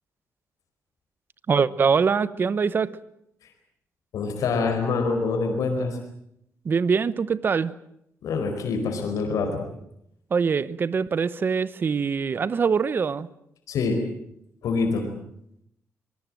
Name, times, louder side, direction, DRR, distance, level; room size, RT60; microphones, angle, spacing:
voice 1, 1.5-3.0 6.6-7.7 10.3-13.3, right 5 dB, 40° right, 17 dB, 1.0 m, -23 dB
voice 2, 4.1-6.0 8.2-9.6 13.7-14.0 14.6-15.1, left 4 dB, 90° left, 4 dB, 4.7 m, -25 dB
24.5 x 20.5 x 7.7 m, 0.75 s
wide cardioid pair, 140°, 6 cm